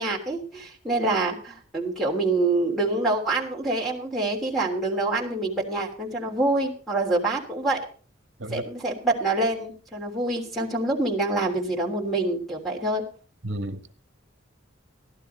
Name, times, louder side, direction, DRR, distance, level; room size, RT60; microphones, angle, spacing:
voice 1, 0.0-7.8 8.5-13.0, right 2 dB, ahead, 3.1 m, -26 dB
voice 2, 13.4-13.9, right 1 dB, 65° right, 1.3 m, -32 dB
15.5 x 11.5 x 4.4 m
head